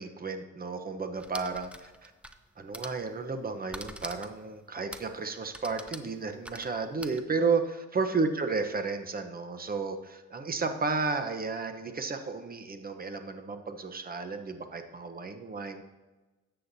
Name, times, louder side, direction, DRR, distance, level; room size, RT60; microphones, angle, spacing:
voice 1, 0.0-2.1 2.6-15.8, right 4 dB, 30° right, 7 dB, 1.0 m, -32 dB
sound 1, 1.2-2.4 2.7-3.0 3.7-4.4 4.9-5.2 5.5-7.2, right 1 dB, 5° right, 0.6 m, -44 dB
13.0 x 7.8 x 2.8 m, 1.2 s
cardioid pair, 90°, 30 cm